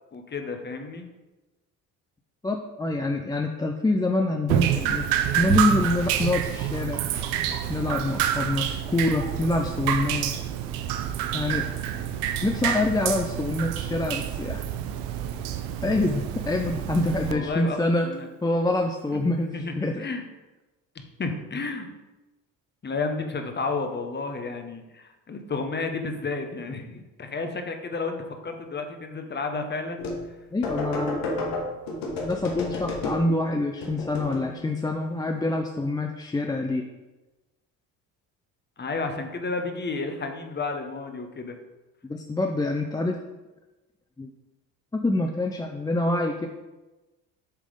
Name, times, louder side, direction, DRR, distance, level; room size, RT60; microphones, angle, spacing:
voice 1, 0.1-1.1 17.2-18.3 19.1-20.2 20.9-21.9 22.8-28.2 28.4-30.1 38.8-41.6, left 3 dB, 25° left, 5 dB, 1.0 m, -32 dB
voice 2, 2.4-5.1 5.4-7.0 7.7-10.4 11.3-11.7 12.4-14.6 15.8-18.1 18.4-20.1 30.5-31.3 32.2-36.9 42.1-43.2 44.2-44.3 44.9-46.5, left 2 dB, 10° left, 3 dB, 0.5 m, -26 dB
Drip, 4.5-17.3, right 10 dB, 85° right, 0.7 m, -28 dB
sound 1, 30.0-30.3 30.6-33.4 33.8-34.5, left 2 dB, 85° left, 1.4 m, -31 dB
7.6 x 3.5 x 5.0 m, 1.1 s
supercardioid pair, 75°, 39 cm